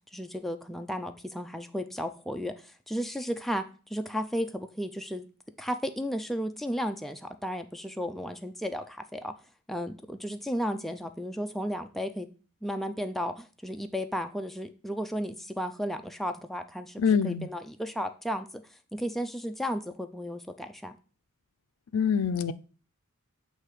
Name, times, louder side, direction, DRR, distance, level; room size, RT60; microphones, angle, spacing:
voice 1, 0.1-5.3 5.6-9.3 9.7-12.3 12.6-18.6 18.9-20.9, equal, ahead, 0.3 m, -34 dB
voice 2, 17.0-17.5 21.9-22.5, left 6 dB, 80° left, 0.4 m, -25 dB
7.5 x 2.7 x 4.8 m
head